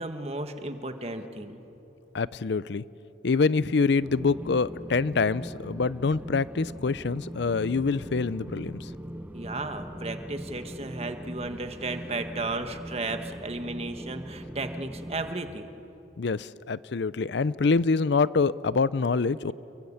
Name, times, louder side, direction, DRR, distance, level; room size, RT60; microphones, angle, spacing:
voice 1, 0.0-1.6 9.3-15.7, right 2 dB, 35° right, 7 dB, 1.5 m, -34 dB
voice 2, 2.1-2.8 3.2-8.9 16.2-19.5, left 4 dB, 65° left, 18 dB, 0.5 m, -25 dB
sound 1, 4.0-15.3, equal, 10° right, 0.6 m, -41 dB
29.0 x 22.5 x 8.6 m, 2.9 s
head